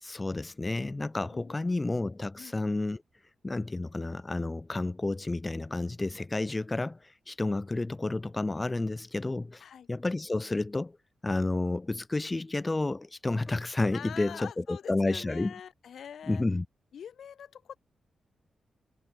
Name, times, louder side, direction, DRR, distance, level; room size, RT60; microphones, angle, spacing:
voice 1, 0.0-3.0 3.4-9.6 9.9-11.0 11.2-15.5 16.3-16.6, left 2 dB, 15° left, 1.6 m, -31 dB
voice 2, 1.1-2.1 2.4-2.5 9.6-9.9 13.9-16.4 16.9-17.8, left 8 dB, 70° left, 4.3 m, -45 dB
wide cardioid pair, 150°, 0 cm